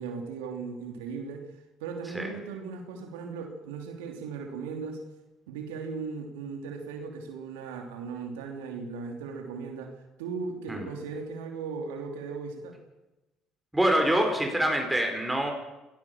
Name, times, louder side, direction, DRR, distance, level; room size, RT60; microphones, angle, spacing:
voice 1, 0.0-1.5 1.8-5.0 5.5-12.8, right 5 dB, 85° right, 3 dB, 3.0 m, -37 dB
voice 2, 13.7-15.5, right 1 dB, 10° right, 3 dB, 5.4 m, -25 dB
24.5 x 17.5 x 7.3 m, 1.0 s
hypercardioid pair, 65°, 0 cm